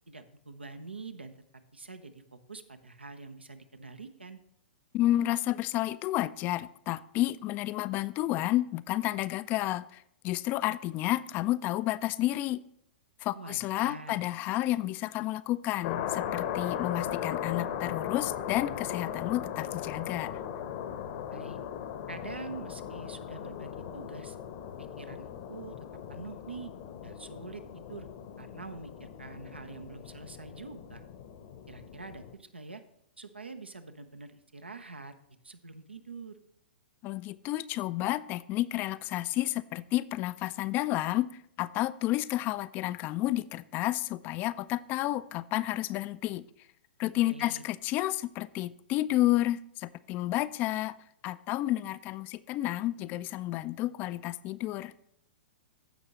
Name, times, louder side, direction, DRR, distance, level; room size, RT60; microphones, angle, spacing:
voice 1, 0.1-1.3 1.7-4.4 13.3-14.2 21.3-21.6 22.1-24.4 24.8-25.7 26.1-26.7 27.0-28.1 28.4-31.0 31.7-32.8 33.2-35.1 35.4-36.4 47.2-47.6, right 3 dB, 90° right, 9 dB, 0.8 m, -45 dB
voice 2, 4.9-12.6 13.2-20.3 37.0-41.3 41.6-46.4 47.0-50.9 51.2-54.9, left 15 dB, 30° left, 16 dB, 0.3 m, -31 dB
sound 1, 15.8-32.4, left 9 dB, 50° left, 0.9 m, -38 dB
15.0 x 5.4 x 3.0 m, 0.75 s
figure-of-eight pair, 110°, 6 cm